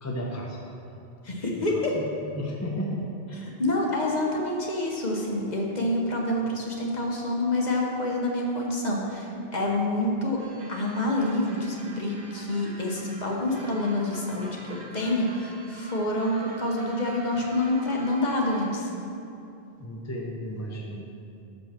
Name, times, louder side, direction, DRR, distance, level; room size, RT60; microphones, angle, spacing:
voice 1, 0.0-0.6 1.6-2.1 2.3-3.0 19.8-21.1, equal, 20° left, -1 dB, 0.6 m, -33 dB
voice 2, 1.2-1.9 3.4-10.4 10.7-18.9, left 1 dB, 45° left, -2 dB, 1.0 m, -27 dB
sound 1, 10.4-18.7, right 2 dB, 45° right, 1.0 m, -46 dB
6.2 x 5.2 x 5.8 m, 2.7 s
omnidirectional pair, 1.1 m